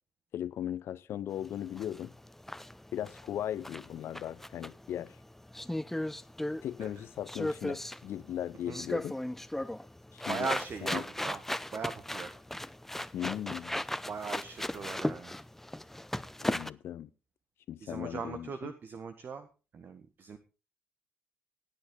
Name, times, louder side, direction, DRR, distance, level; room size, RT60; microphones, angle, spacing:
voice 1, 0.3-2.1 2.9-5.2 6.6-9.1 10.1-10.5 10.8-11.0 13.1-13.8 16.4-17.1 17.7-18.7, left 11 dB, 55° left, 0.9 m, -37 dB
sound 1, 1.3-16.7, left 1 dB, 5° left, 0.6 m, -37 dB
voice 2, 10.3-11.4 11.7-12.4 14.1-15.3 17.8-19.5 19.7-20.4, right 5 dB, 45° right, 1.5 m, -39 dB
17.5 x 10.0 x 3.9 m
figure-of-eight pair, 45°, 5 cm